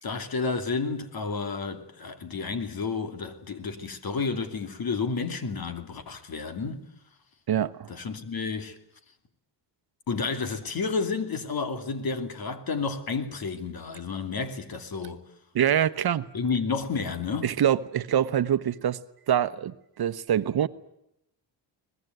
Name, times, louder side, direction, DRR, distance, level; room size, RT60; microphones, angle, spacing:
voice 1, 0.0-6.9 7.9-8.8 10.1-15.2 16.3-17.5, left 4 dB, 50° left, 2.9 m, -31 dB
voice 2, 7.5-7.9 15.5-16.3 17.4-19.0 19.3-20.7, right 10 dB, 55° right, 1.1 m, -25 dB
23.5 x 20.5 x 9.4 m
cardioid pair, 115°, 44 cm